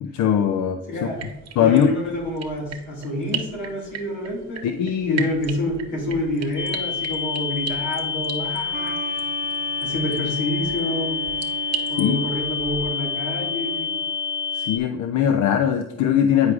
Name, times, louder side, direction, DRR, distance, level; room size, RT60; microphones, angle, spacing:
voice 1, 0.0-1.1 1.6-1.9 4.6-5.2 12.0-12.2 14.5-16.5, left 9 dB, 70° left, 7 dB, 0.5 m, -20 dB
voice 2, 0.9-1.2 1.6-4.6 5.1-9.3 9.8-11.2 11.9-13.9, left 1 dB, 90° left, -2 dB, 2.0 m, -28 dB
sound 1, 1.1-12.9, right 8 dB, 60° right, 0.9 m, -37 dB
sound 2, 6.6-14.8, left 6 dB, 15° left, 0.4 m, -28 dB
sound 3, 8.7-15.0, right 8 dB, 30° right, 0.6 m, -37 dB
9.4 x 4.8 x 2.4 m, 0.89 s
cardioid pair, 90°, 30 cm